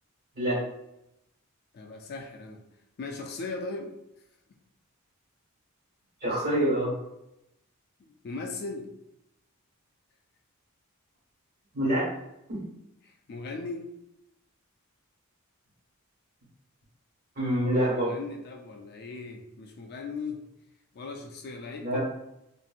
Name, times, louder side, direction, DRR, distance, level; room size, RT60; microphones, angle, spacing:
voice 1, 1.7-2.6 3.0-3.9 8.0-8.9 13.0-13.9 17.9-20.4 20.9-22.0, left 3 dB, 45° left, 2 dB, 0.3 m, -38 dB
voice 2, 6.2-6.9 11.7-12.1 12.5-12.6 17.3-18.2 21.8-22.0, right 1 dB, 40° right, -7 dB, 1.5 m, -26 dB
2.9 x 2.6 x 2.4 m, 0.86 s
head